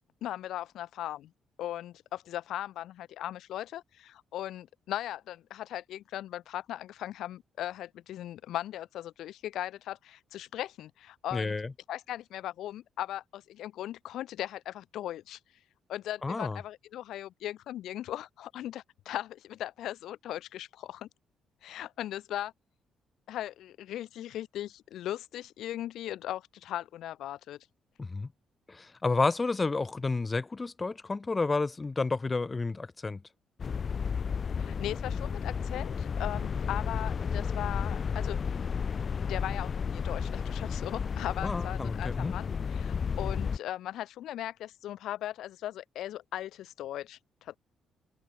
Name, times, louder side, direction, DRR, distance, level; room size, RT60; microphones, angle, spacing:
voice 1, 0.2-1.3 1.6-11.5 11.9-15.4 15.9-21.1 21.6-22.5 23.3-27.6 34.6-38.5 39.0-42.5 42.7-47.6, left 12 dB, 80° left, 2.4 m, -38 dB
voice 2, 11.3-11.7 16.2-16.6 28.0-28.3 28.7-33.2 41.4-42.3, left 3 dB, 25° left, 5.6 m, -30 dB
sound 1, 33.6-43.6, left 6 dB, 45° left, 4.6 m, -32 dB
cardioid pair, 90°, 0 cm